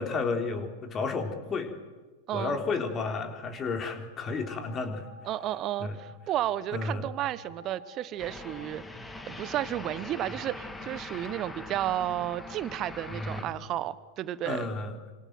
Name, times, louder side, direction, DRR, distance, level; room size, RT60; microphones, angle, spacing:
voice 1, 0.0-1.7 2.3-5.0 5.8-6.0 6.7-7.1 10.3-10.4 13.1-13.5 14.5-15.0, left 4 dB, 25° left, 5 dB, 3.9 m, -32 dB
voice 2, 2.3-2.6 5.2-14.7, right 12 dB, 35° right, 16 dB, 1.2 m, -32 dB
sound 1, 2.6-3.0 3.4-3.8 4.2-6.9 7.3-8.7 9.2-10.4 10.9-13.3, equal, 90° left, 7.1 m, -52 dB
sound 2, 8.2-13.4, left 2 dB, 10° left, 2.3 m, -42 dB
27.5 x 26.5 x 7.8 m, 1.3 s
figure-of-eight pair, 90°, 0 cm